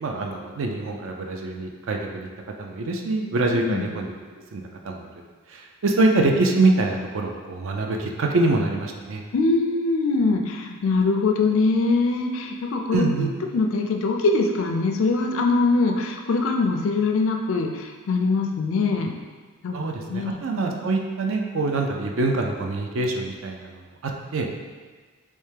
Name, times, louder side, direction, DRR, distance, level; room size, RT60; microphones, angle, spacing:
voice 1, 0.0-2.3 2.6-4.2 4.5-5.1 5.5-9.2 12.9-13.3 19.7-24.5, right 2 dB, 60° right, 2 dB, 0.4 m, -25 dB
voice 2, 3.5-3.9 9.3-19.1 19.6-20.4, left 3 dB, 60° left, 3 dB, 0.4 m, -23 dB
3.3 x 3.1 x 3.3 m, 1.5 s
head